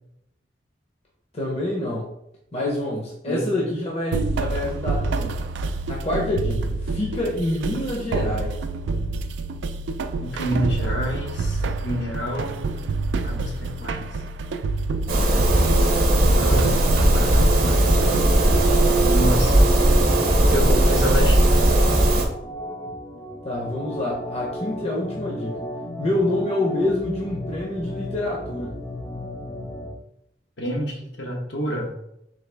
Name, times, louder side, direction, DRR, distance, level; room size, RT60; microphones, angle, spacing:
voice 1, 1.3-2.0 2.5-5.4 5.9-8.6 23.4-25.6 26.0-28.8, left 1 dB, 35° left, -3 dB, 0.8 m, -26 dB
voice 2, 3.3-3.6 10.2-12.6 13.2-14.1 16.2-16.7 17.0-18.0 19.1-19.6 20.5-21.7 30.6-31.9, equal, 75° left, -1 dB, 1.1 m, -28 dB
sound 1, 4.1-18.6, right 3 dB, 75° right, 0.3 m, -28 dB
sound 2, 15.1-22.3, right 1 dB, 55° right, 0.8 m, -17 dB
Organ, 17.8-30.0, left 1 dB, 10° left, 0.4 m, -35 dB
4.0 x 2.9 x 3.3 m, 0.80 s
head